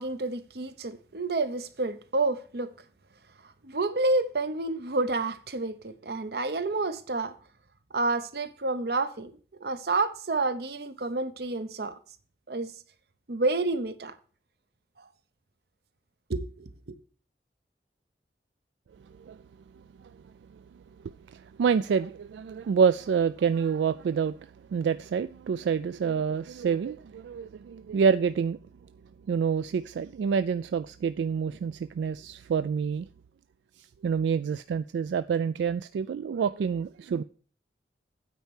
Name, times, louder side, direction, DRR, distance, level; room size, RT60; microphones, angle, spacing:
voice 1, 0.0-2.7 3.6-7.3 7.9-9.3 9.6-11.9 12.5-12.7 13.3-14.1 16.3-17.0, right 3 dB, 65° right, 0.8 m, -29 dB
voice 2, 21.3-24.4 24.7-28.6 29.3-33.1 34.0-37.2, right 6 dB, 85° right, 0.3 m, -27 dB
9.2 x 4.3 x 7.2 m
head